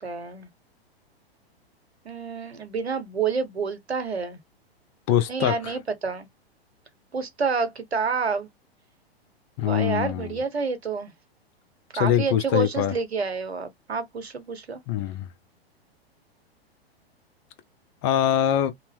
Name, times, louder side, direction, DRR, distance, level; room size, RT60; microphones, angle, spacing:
voice 1, 0.0-0.5 2.0-4.4 5.3-6.3 7.1-8.5 9.6-11.1 11.9-14.8, right 5 dB, 80° right, 0.9 m, -28 dB
voice 2, 5.1-5.8 9.6-10.4 12.0-12.9 14.9-15.3 18.0-18.7, left 10 dB, 30° left, 0.4 m, -23 dB
2.8 x 2.0 x 3.3 m
figure-of-eight pair, 105°, 31 cm